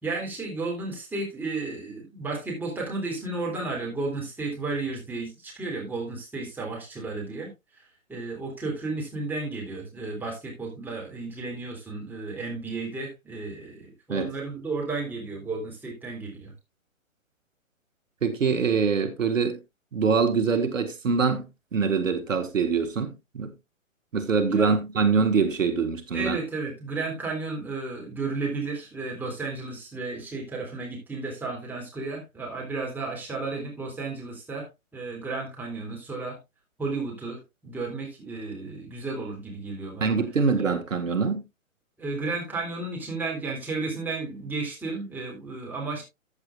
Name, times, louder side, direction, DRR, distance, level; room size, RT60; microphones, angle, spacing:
voice 1, 0.0-7.5 8.1-16.5 24.5-24.7 26.1-36.4 36.8-40.1 40.6-40.7 42.0-46.0, right 3 dB, 5° right, 3.7 m, -33 dB
voice 2, 18.2-19.6 19.9-23.5 24.1-26.4 40.0-41.4, right 5 dB, 70° right, 1.6 m, -24 dB
14.0 x 8.3 x 2.4 m
figure-of-eight pair, 130°, 41 cm